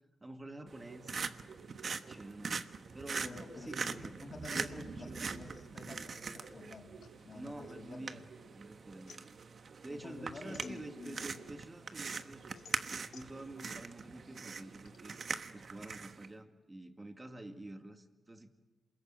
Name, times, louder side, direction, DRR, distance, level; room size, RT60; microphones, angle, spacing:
voice 1, 0.2-1.5 2.1-4.2 4.5-5.4 7.3-9.3 9.8-12.4 12.9-15.2 15.5-18.5, right 1 dB, 20° right, 6 dB, 2.1 m, -48 dB
sound 1, 0.7-16.3, right 5 dB, 45° right, 1.2 m, -42 dB
voice 2, 3.2-6.9 7.2-8.1 9.9-11.3, left 3 dB, 40° left, 0 dB, 6.9 m, -49 dB
sound 2, 7.0-8.5 8.8-11.4 11.8-15.0, left 7 dB, 80° left, 2.0 m, -59 dB
28.0 x 21.0 x 9.0 m, 1.2 s
wide cardioid pair, 125°, 0 cm